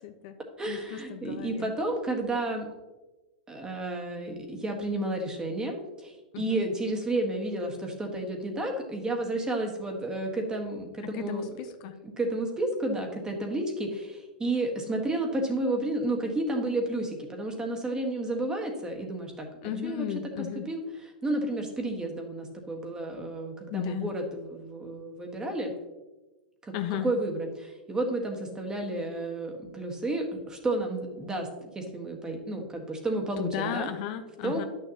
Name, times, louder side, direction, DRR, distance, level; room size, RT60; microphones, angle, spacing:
voice 1, 0.0-0.4 0.7-1.7 6.3-6.6 11.0-11.9 19.6-20.7 23.7-24.1 26.7-27.1 33.4-34.7, left 10 dB, 55° left, 9 dB, 0.6 m, -34 dB
voice 2, 0.6-2.7 3.5-11.4 12.0-19.5 19.8-20.1 20.4-25.7 26.6-33.9 34.4-34.7, right 2 dB, 15° right, 2 dB, 1.5 m, -31 dB
10.5 x 6.6 x 2.9 m, 1.1 s
hypercardioid pair, 110°, 5 cm